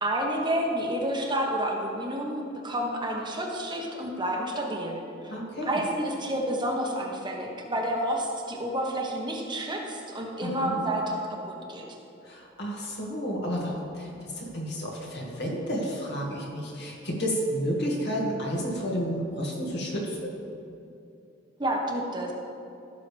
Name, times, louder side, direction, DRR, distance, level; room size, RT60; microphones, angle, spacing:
voice 1, 0.0-5.0 5.6-11.8 21.6-22.3, right 1 dB, 25° right, 0 dB, 1.1 m, -29 dB
voice 2, 5.3-5.8 10.4-10.8 12.2-20.3, equal, 60° left, -2 dB, 1.9 m, -31 dB
15.5 x 6.7 x 3.4 m, 2.7 s
head